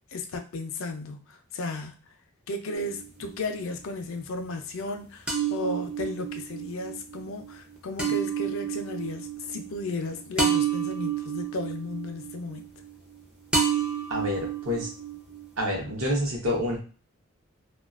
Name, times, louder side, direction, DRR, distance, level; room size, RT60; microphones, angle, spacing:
voice 1, 0.1-2.0 2.5-12.7, left 2 dB, 60° left, 0.4 m, -34 dB
sound 1, 2.8-3.6 5.3-13.2 13.5-15.6, right 7 dB, 5° right, 0.4 m, -30 dB
voice 2, 14.1-14.9 15.6-16.8, left 1 dB, 65° right, 0.8 m, -28 dB
2.3 x 2.2 x 2.3 m
head